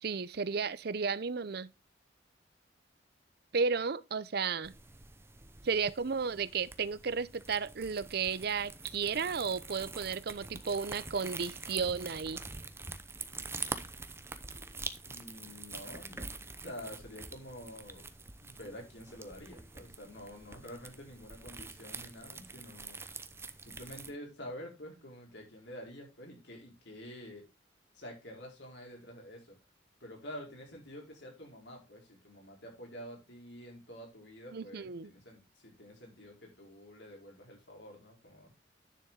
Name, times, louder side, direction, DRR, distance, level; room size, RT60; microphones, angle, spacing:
voice 1, 0.0-1.7 3.5-4.7 5.6-12.4 34.5-35.1, right 5 dB, 60° right, 0.6 m, -33 dB
sound 1, 4.6-24.1, right 3 dB, 15° right, 0.8 m, -45 dB
voice 2, 15.0-16.3 16.6-18.1 18.4-23.2 23.6-27.4 27.9-29.6 30.0-38.5, equal, 70° left, 4.8 m, -48 dB
10.0 x 7.0 x 3.7 m
head